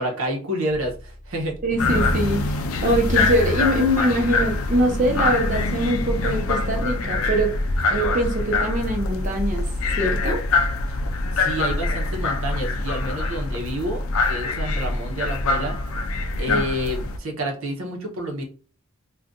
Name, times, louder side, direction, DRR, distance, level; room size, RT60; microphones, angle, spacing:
voice 1, 0.0-1.9 11.3-15.8 16.4-18.4, right 1 dB, 80° right, 1 dB, 0.9 m, -29 dB
sound 1, 0.7-16.6, left 1 dB, 40° left, 0.9 m, -33 dB
voice 2, 1.6-7.5 7.9-9.6 10.0-10.4 16.5-16.6, right 1 dB, 35° right, 1 dB, 0.8 m, -23 dB
sound 2, 1.8-17.2, left 3 dB, 85° left, 0.4 m, -25 dB
2.5 x 2.4 x 3.6 m, 0.39 s
head